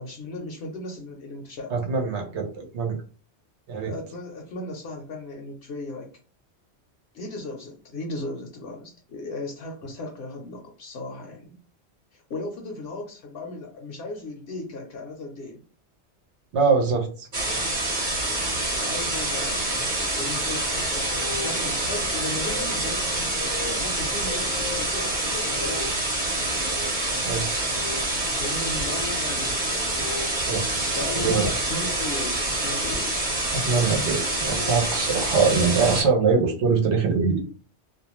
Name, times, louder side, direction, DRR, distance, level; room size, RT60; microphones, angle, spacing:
voice 1, 0.0-1.8 3.9-6.1 7.1-11.5 12.1-15.6 18.7-26.1 28.4-30.0 30.9-33.3, left 2 dB, 70° left, 1 dB, 0.9 m, -36 dB
voice 2, 1.7-3.0 3.7-3.9 16.5-17.3 27.2-27.8 30.5-31.5 33.5-37.5, right 5 dB, 85° right, 2 dB, 1.0 m, -23 dB
sound 1, 17.3-36.0, right 2 dB, 45° right, 1.0 m, -27 dB
sound 2, 21.0-32.9 34.0-36.3, left 3 dB, 45° left, 0.4 m, -40 dB
2.5 x 2.2 x 2.9 m, 0.38 s
omnidirectional pair, 1.1 m